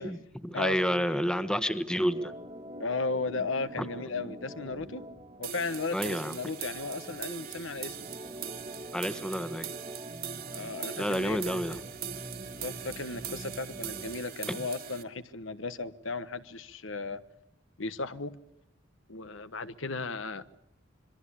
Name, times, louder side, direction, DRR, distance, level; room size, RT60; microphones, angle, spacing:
voice 1, 0.0-2.3 3.8-3.9 5.9-6.4 8.9-9.7 11.0-11.8 14.5-14.6, equal, 5° left, 1.2 m, -30 dB
voice 2, 0.5-1.0 2.8-5.0 5.4-8.1 10.5-11.8 12.5-17.2 17.8-18.4 19.1-20.6, left 3 dB, 75° left, 1.2 m, -35 dB
Organ, 2.1-14.2, right 1 dB, 30° right, 1.4 m, -45 dB
sound 1, 5.4-15.0, right 8 dB, 50° right, 1.9 m, -41 dB
26.0 x 23.0 x 8.6 m
head